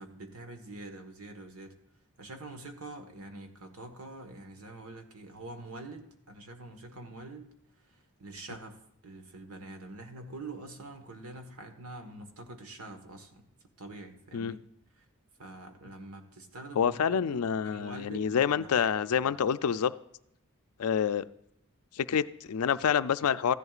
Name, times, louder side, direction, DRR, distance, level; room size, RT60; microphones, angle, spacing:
voice 1, 0.0-1.7 2.2-7.5 7.9-13.4 13.8-14.6 15.0-15.1 15.4-18.9 19.2-19.4, right 2 dB, 80° right, 6 dB, 1.4 m, -45 dB
voice 2, 16.8-19.9 20.8-21.2 21.9-23.5, left 7 dB, 80° left, 14 dB, 0.4 m, -27 dB
15.0 x 11.0 x 2.4 m, 0.80 s
head